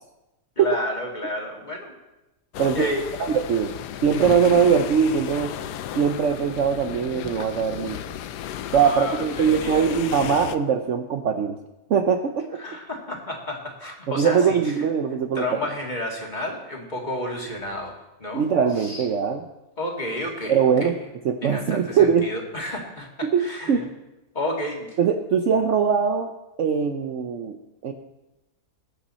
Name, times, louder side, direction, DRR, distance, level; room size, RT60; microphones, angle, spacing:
voice 1, 0.6-1.9 2.7-3.1 8.7-10.0 12.6-14.7 15.3-17.9 18.2-18.4 18.8-19.1 19.8-21.1 21.4-23.9 24.3-25.0, left 1 dB, 25° left, 0 dB, 2.3 m, -31 dB
sound 1, 2.5-10.6, left 10 dB, 90° left, 1.2 m, -34 dB
voice 2, 3.2-3.7 4.0-5.5 5.9-8.0 8.7-11.6 11.9-12.8 14.1-15.4 18.3-19.4 20.5-20.9 21.2-22.3 23.2-23.9 25.0-26.3 26.6-27.6 27.8-27.9, right 7 dB, 60° right, 6 dB, 0.9 m, -21 dB
20.5 x 8.8 x 4.3 m, 0.99 s
omnidirectional pair, 1.7 m